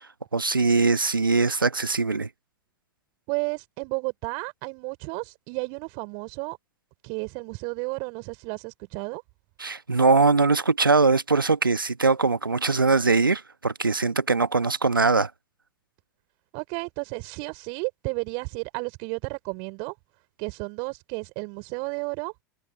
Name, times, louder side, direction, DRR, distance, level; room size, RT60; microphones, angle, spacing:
voice 1, 0.3-2.3 9.6-15.3, right 4 dB, 85° right, 1.3 m, -21 dB
voice 2, 3.3-6.6 7.0-9.2 16.5-19.9 20.4-22.3, right 34 dB, 45° right, 4.1 m, -32 dB
figure-of-eight pair, 95°, 11 cm